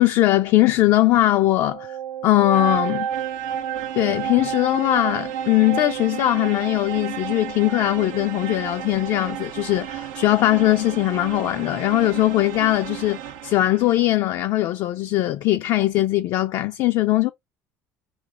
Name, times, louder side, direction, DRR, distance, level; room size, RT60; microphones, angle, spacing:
voice 1, 0.0-2.0 2.2-3.1 3.9-17.3, left 15 dB, 65° left, 0.4 m, -20 dB
sound 1, 1.4-14.2, right 10 dB, 85° right, 0.5 m, -32 dB
3.1 x 2.4 x 3.6 m
supercardioid pair, 90°, 7 cm